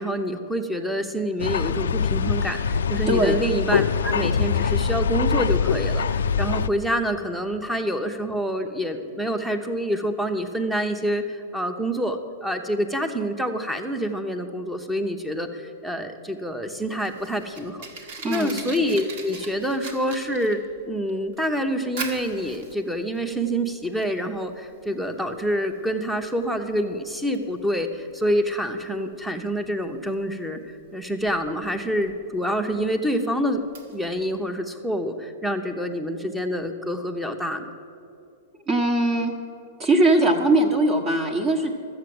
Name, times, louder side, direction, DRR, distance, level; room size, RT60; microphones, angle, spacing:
voice 1, 0.0-17.9 18.3-30.6 30.9-37.7, equal, 5° right, 7 dB, 0.9 m, -27 dB
sound 1, 1.4-6.7, left 6 dB, 90° left, 0.3 m, -23 dB
Fire, 16.7-34.4, right 4 dB, 65° right, 1.8 m, -42 dB
voice 2, 18.2-18.5 38.7-39.3 39.8-41.7, right 1 dB, 30° right, 1 dB, 1.2 m, -20 dB
12.5 x 7.9 x 7.8 m, 2.5 s
hypercardioid pair, 130°, 0 cm